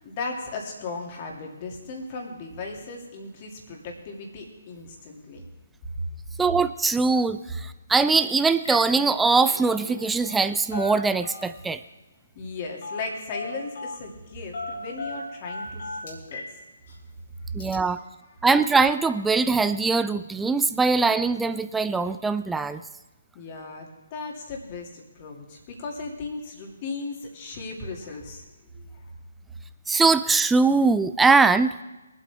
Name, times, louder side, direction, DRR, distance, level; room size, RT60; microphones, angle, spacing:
voice 1, 0.0-5.4 12.3-16.5 23.3-28.5 28.7-29.1, left 3 dB, 35° left, 1 dB, 2.6 m, -36 dB
voice 2, 6.4-11.8 17.5-18.0 18.4-22.8 29.9-31.7, right 4 dB, 5° right, 11 dB, 0.4 m, -21 dB
Telephone, 8.0-8.2 8.5-8.8 9.1-10.4 10.7-11.7 12.8-13.1 13.3-14.0 14.5-16.5 16.9-17.0 17.6-17.7, left 2 dB, 55° left, 2.9 m, -36 dB
22.5 x 8.4 x 3.5 m, 1.1 s
figure-of-eight pair, 140°, 0 cm